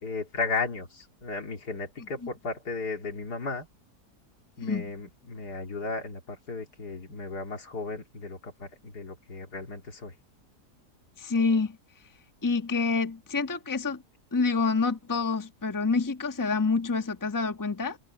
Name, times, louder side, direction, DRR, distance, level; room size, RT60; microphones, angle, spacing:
voice 1, 0.0-3.7 4.6-10.1, left 3 dB, 75° left, 3.3 m, -35 dB
voice 2, 4.6-4.9 11.2-11.8 12.4-14.0 14.3-18.0, left 4 dB, 15° left, 1.2 m, -27 dB
omnidirectional pair, 1.7 m